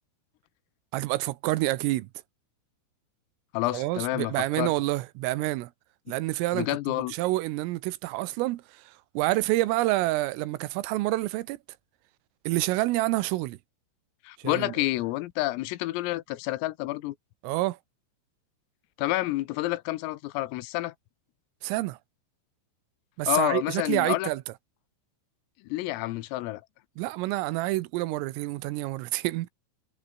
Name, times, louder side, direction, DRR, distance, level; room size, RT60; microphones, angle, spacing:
voice 1, 0.9-2.1 3.7-5.7 6.1-11.6 12.5-13.6 14.4-14.7 17.4-17.8 21.6-22.0 23.2-24.4 27.0-29.5, right 18 dB, 80° right, 3.5 m, -28 dB
voice 2, 3.5-4.7 6.5-7.2 14.3-17.2 19.0-20.9 23.3-24.3 25.6-26.6, left 18 dB, 80° left, 3.7 m, -29 dB
omnidirectional pair, 6.0 m